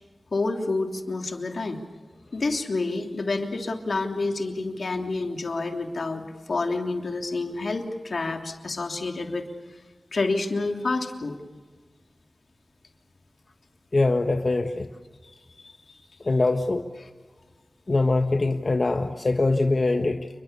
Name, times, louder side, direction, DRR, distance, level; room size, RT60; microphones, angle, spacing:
voice 1, 0.3-1.8 2.3-9.5 10.1-11.4 15.6-15.9, left 3 dB, 75° left, 4 dB, 3.1 m, -28 dB
voice 2, 13.9-14.9 16.2-16.8 17.9-20.3, left 2 dB, 50° left, 5 dB, 1.5 m, -23 dB
29.5 x 22.5 x 6.9 m, 1.3 s
wide cardioid pair, 75°, 0 cm